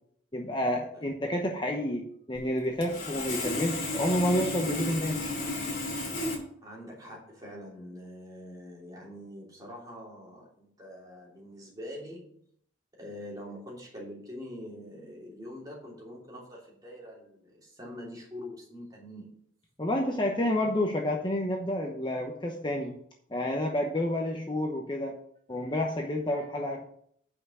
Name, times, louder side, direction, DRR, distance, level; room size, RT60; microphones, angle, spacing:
voice 1, 0.3-5.2 19.8-22.9 23.3-25.1 25.5-26.8, left 1 dB, 25° left, 1 dB, 0.9 m, -29 dB
Sawing, 2.8-6.3, left 2 dB, 45° left, 2.7 m, -33 dB
voice 2, 6.6-12.4 13.0-19.5, equal, 20° right, -3 dB, 3.0 m, -44 dB
8.5 x 5.7 x 6.2 m, 0.67 s
head